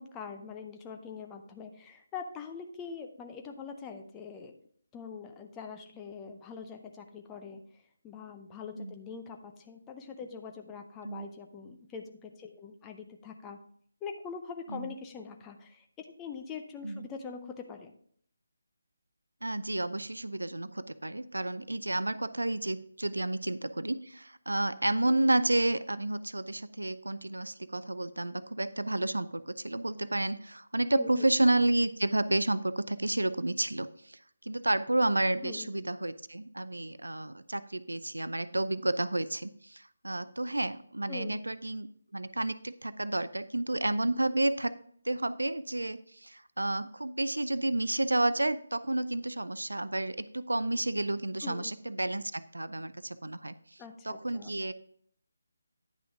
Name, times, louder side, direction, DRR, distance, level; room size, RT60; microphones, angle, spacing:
voice 1, 0.0-4.6 4.9-13.6 14.0-17.9 30.9-31.3 35.4-35.7 41.1-41.4 51.4-51.7 53.8-54.5, left 5 dB, 10° left, 5 dB, 0.6 m, -43 dB
voice 2, 19.4-34.2 34.4-41.9 42.1-44.7 45.0-53.5 54.1-54.7, right 1 dB, 70° right, 14 dB, 0.5 m, -31 dB
10.0 x 5.9 x 3.6 m, 0.62 s
figure-of-eight pair, 150°, 0 cm